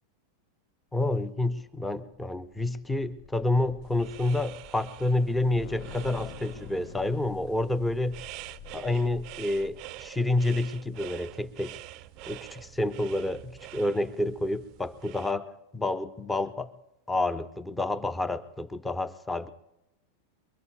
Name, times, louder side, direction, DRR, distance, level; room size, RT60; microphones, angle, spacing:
voice 1, 0.9-8.2 8.7-11.8 12.3-16.7 17.1-19.5, left 2 dB, 5° left, 0.7 m, -29 dB
sound 1, 1.8-10.2, left 9 dB, 45° left, 0.6 m, -48 dB
sound 2, 3.8-15.3, right 16 dB, 40° right, 0.5 m, -46 dB
28.5 x 22.5 x 2.3 m
figure-of-eight pair, 90°, 0 cm